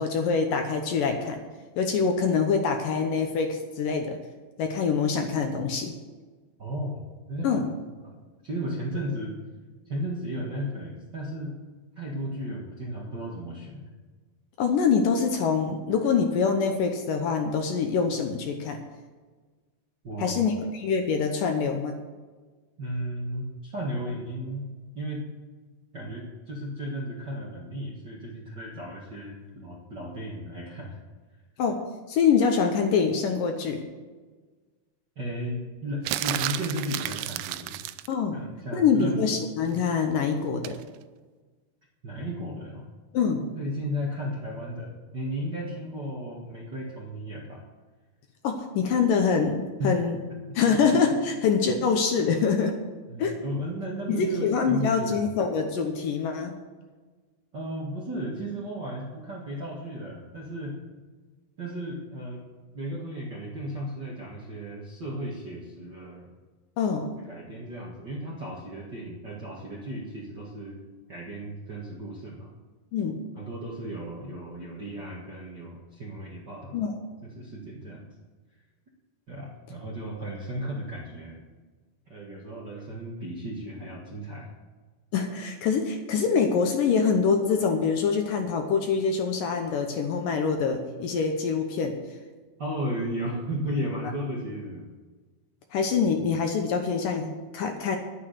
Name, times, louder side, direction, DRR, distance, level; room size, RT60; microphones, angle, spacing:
voice 1, 0.0-1.4 1.8-4.2 4.6-5.9 7.4-7.6 14.6-18.8 20.2-22.0 31.6-33.8 38.1-38.4 38.7-40.8 43.1-43.5 48.4-50.2 50.6-52.8 53.2-53.4 54.1-56.6 66.8-67.1 72.9-73.2 76.7-77.0 85.1-92.0 95.7-98.0, left 5 dB, 70° left, 4 dB, 2.3 m, -25 dB
voice 2, 6.6-7.5 8.0-8.1 8.4-9.3 9.8-11.6 11.9-13.9 20.0-20.5 22.8-24.7 24.9-25.3 25.9-31.0 35.1-37.8 38.3-39.3 42.0-42.8 43.5-47.6 49.8-50.0 53.1-55.3 57.5-60.8 61.6-62.4 62.7-66.3 67.3-70.8 71.1-72.5 73.3-76.8 77.2-78.1 79.3-81.4 82.1-84.5 92.6-94.8, equal, 45° right, -4 dB, 1.4 m, -34 dB
sound 1, 36.1-38.1 40.6-40.8, right 15 dB, 85° right, 2.5 m, -31 dB
11.5 x 9.7 x 6.7 m, 1.4 s
omnidirectional pair, 4.6 m